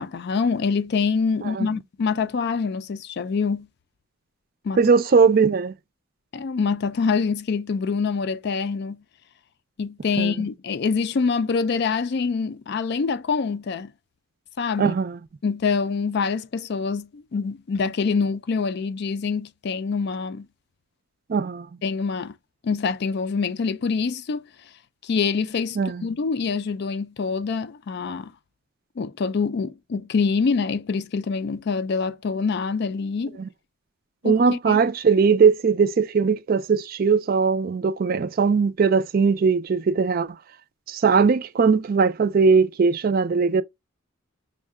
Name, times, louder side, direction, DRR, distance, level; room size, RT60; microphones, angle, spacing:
voice 1, 0.0-3.7 4.6-4.8 6.3-9.0 9.8-13.9 14.6-14.9 15.4-20.5 21.8-22.3 22.6-24.4 25.0-28.3 29.0-33.4 34.2-34.8, left 5 dB, 55° left, 0.4 m, -25 dB
voice 2, 4.8-5.7 10.2-10.3 14.8-15.2 21.3-21.7 25.8-26.1 33.4-33.5 34.2-40.4 40.9-43.6, right 5 dB, 45° right, 0.4 m, -20 dB
5.4 x 2.2 x 3.4 m
head